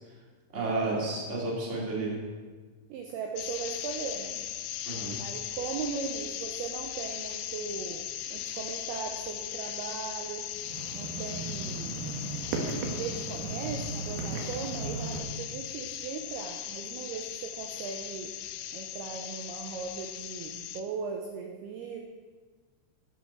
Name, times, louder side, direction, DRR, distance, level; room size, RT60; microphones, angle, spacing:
voice 1, 0.5-2.2 4.8-5.2, right 2 dB, 25° right, -3 dB, 1.9 m, -31 dB
voice 2, 2.9-4.4 5.2-10.5 10.9-12.0 12.6-18.3 18.7-22.0, right 6 dB, 80° right, 2 dB, 2.3 m, -38 dB
sound 1, 3.4-20.8, left 11 dB, 90° left, 2.5 m, -38 dB
sound 2, 10.6-15.2, right 4 dB, 65° right, 2.6 m, -36 dB
12.5 x 11.0 x 4.5 m, 1.4 s
omnidirectional pair, 5.5 m